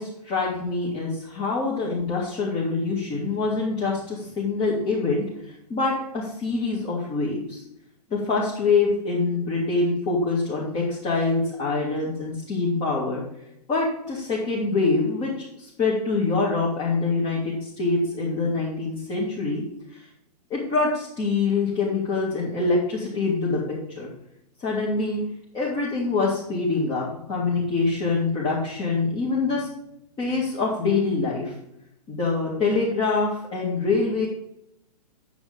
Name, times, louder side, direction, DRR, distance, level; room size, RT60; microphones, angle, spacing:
voice 1, 0.0-5.2 5.7-7.6 8.1-13.2 13.7-19.6 19.9-20.0 20.5-23.6 23.9-24.1 24.6-25.2 25.5-29.7 30.2-31.5 32.1-34.3, left 3 dB, 25° left, -5 dB, 2.2 m, -25 dB
8.6 x 7.1 x 3.8 m, 0.78 s
figure-of-eight pair, 120°, 21 cm